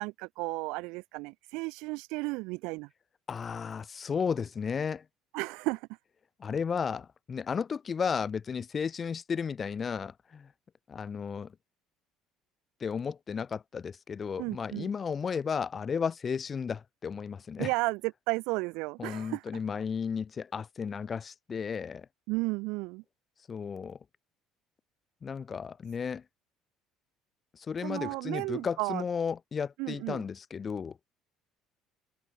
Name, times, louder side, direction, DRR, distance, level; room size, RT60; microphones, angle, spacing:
voice 1, 0.0-2.9 5.3-5.9 14.4-14.9 17.6-19.4 22.3-23.0 27.8-29.0 29.8-30.2, right 25 dB, 85° right, 2.3 m, -33 dB
voice 2, 3.3-5.0 6.4-10.5 10.9-11.5 12.8-17.7 19.0-22.1 23.5-24.0 25.2-26.2 27.5-31.0, left 6 dB, 25° left, 1.0 m, -34 dB
cardioid pair, 150°, 0 cm